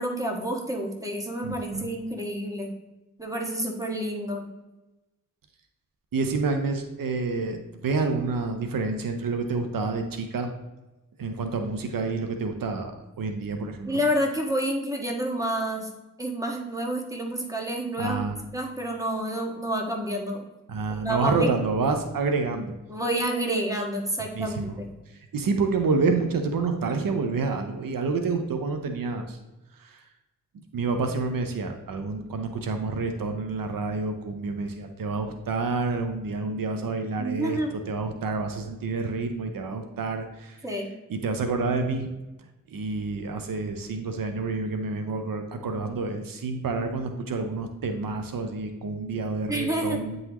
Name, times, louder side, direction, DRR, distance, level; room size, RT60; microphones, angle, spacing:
voice 1, 0.0-2.7 3.2-4.5 13.9-15.9 16.2-18.2 18.5-20.4 21.0-21.5 22.9-24.9 37.2-37.7 40.6-40.9 49.5-50.0, right 1 dB, 10° right, 0 dB, 1.6 m, -29 dB
voice 2, 1.4-1.9 6.1-10.5 11.2-14.0 18.0-18.4 20.7-22.8 24.2-24.8 25.3-29.4 29.8-30.1 30.7-40.6 41.1-42.1 42.7-50.2, right 4 dB, 85° right, 6 dB, 0.7 m, -28 dB
9.1 x 3.9 x 3.0 m, 1.0 s
cardioid pair, 45°, 33 cm